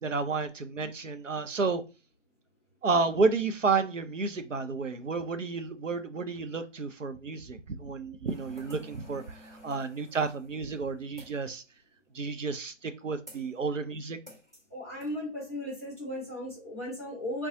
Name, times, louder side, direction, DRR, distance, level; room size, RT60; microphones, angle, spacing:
voice 1, 0.0-1.8 2.8-9.4 9.6-11.6 12.1-14.2, right 4 dB, 85° right, 9 dB, 0.6 m, -31 dB
sound 1, 8.3-11.5 13.3-13.6 14.3-14.7 15.0-15.2, equal, 15° right, 0.9 m, -52 dB
voice 2, 14.7-17.5, left 1 dB, 10° left, -4 dB, 0.7 m, -36 dB
2.5 x 2.3 x 3.9 m, 0.31 s
figure-of-eight pair, 155°, 37 cm